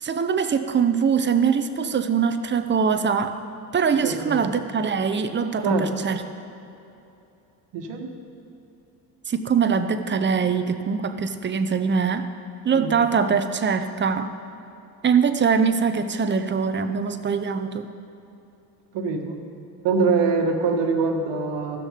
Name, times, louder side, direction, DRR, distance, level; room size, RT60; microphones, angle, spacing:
voice 1, 0.0-3.4 3.7-6.2 9.3-12.3 12.6-14.3 15.0-17.9, right 6 dB, 25° right, 9 dB, 0.7 m, -23 dB
voice 2, 3.9-4.5 5.6-5.9 7.7-8.1 12.7-12.9 18.9-19.4 19.8-21.8, right 4 dB, 60° right, 4 dB, 1.5 m, -24 dB
15.0 x 6.3 x 5.2 m, 2.8 s
supercardioid pair, 75°, 48 cm